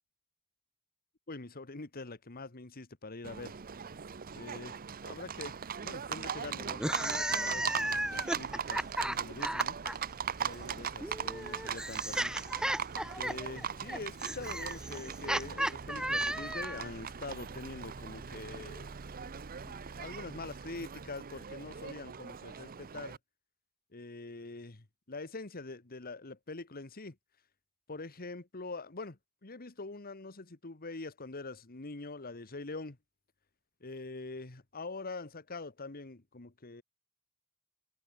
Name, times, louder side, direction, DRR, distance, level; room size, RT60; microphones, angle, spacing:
voice 1, 1.3-3.6 4.3-5.6 5.8-9.8 10.4-12.3 13.2-18.9 19.7-23.2 23.9-27.2 27.9-33.0 33.8-36.8, left 3 dB, 45° left, 1.5 m, -44 dB
Livestock farm animals working animals, 3.2-23.2, right 7 dB, 40° right, 0.7 m, -40 dB
sound 1, 6.7-9.9 11.0-16.9, right 1 dB, 5° right, 0.6 m, -34 dB
head